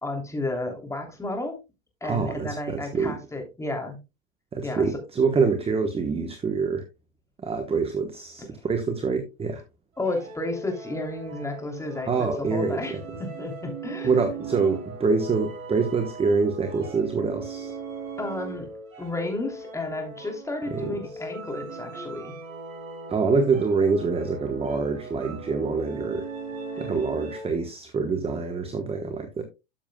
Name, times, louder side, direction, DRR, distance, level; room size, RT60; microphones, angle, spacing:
voice 1, 0.0-1.6 2.0-4.0 4.6-4.9 10.0-14.1 18.2-18.7 19.0-22.3, left 2 dB, 5° left, 2.9 m, -32 dB
voice 2, 2.0-3.2 4.5-6.8 7.4-9.6 12.1-13.0 14.0-17.7 20.7-20.9 23.1-26.3 26.8-29.4, right 4 dB, 15° right, 1.1 m, -25 dB
sound 1, 10.0-27.7, right 3 dB, 90° right, 3.6 m, -39 dB
13.0 x 7.1 x 2.2 m
hypercardioid pair, 115°, 39 cm